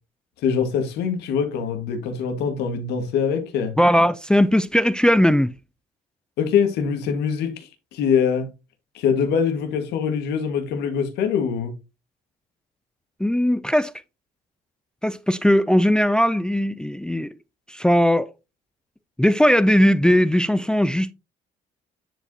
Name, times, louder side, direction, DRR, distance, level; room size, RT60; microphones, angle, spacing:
voice 1, 0.4-3.7 6.4-8.5 8.9-11.7, left 7 dB, 80° left, 1.8 m, -23 dB
voice 2, 3.8-5.5 13.2-13.9 15.0-17.3 17.7-18.3 19.2-21.1, equal, 5° left, 0.4 m, -18 dB
10.0 x 4.8 x 2.8 m
cardioid pair, 110°, 17 cm